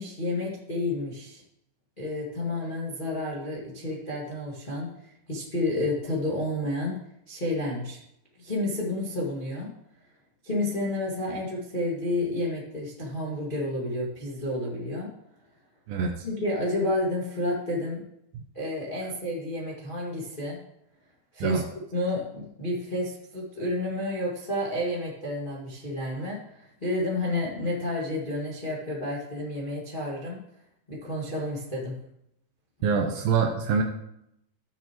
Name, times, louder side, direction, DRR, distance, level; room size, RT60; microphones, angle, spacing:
voice 1, 0.0-1.4 2.0-7.0 7.3-8.0 8.4-9.7 10.4-15.1 16.2-18.0 18.5-20.6 21.3-30.4 30.9-32.0, left 1 dB, 75° left, -4 dB, 0.4 m, -30 dB
voice 2, 15.9-16.3 18.3-18.4 21.4-21.6 32.8-33.8, right 5 dB, 75° right, 4 dB, 2.2 m, -25 dB
14.5 x 7.2 x 3.0 m, 0.78 s
omnidirectional pair, 4.8 m